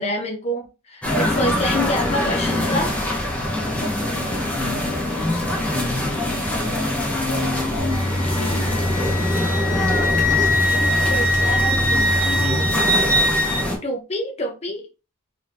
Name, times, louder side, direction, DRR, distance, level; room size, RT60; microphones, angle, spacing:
voice 1, 0.0-3.0 10.7-13.1 13.4-14.9, left 1 dB, 30° left, 0.8 m, -28 dB
sound 1, 1.0-13.8, left 1 dB, 5° left, 1.0 m, -24 dB
voice 2, 4.1-6.6 7.1-8.7, left 1 dB, 60° left, 0.8 m, -37 dB
sound 2, 7.8-12.7, left 1 dB, 85° left, 1.1 m, -26 dB
Wind instrument woodwind instrument, 7.9-13.7, left 1 dB, 10° right, 0.5 m, -22 dB
3.7 x 2.9 x 3.4 m
head